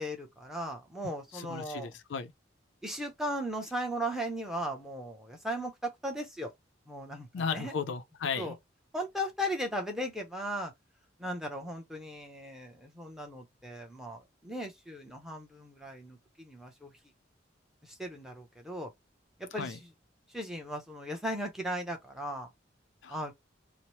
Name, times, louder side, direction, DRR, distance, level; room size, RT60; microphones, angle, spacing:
voice 1, 0.0-1.9 2.8-6.5 6.9-7.7 8.4-8.5 8.9-10.7 11.2-16.9 17.8-18.9 19.4-19.7 20.3-22.5 23.1-23.3, equal, ahead, 0.6 m, -37 dB
voice 2, 1.3-2.3 7.3-8.6 19.5-19.8 23.0-23.2, left 6 dB, 70° left, 0.4 m, -35 dB
2.9 x 2.0 x 3.0 m
head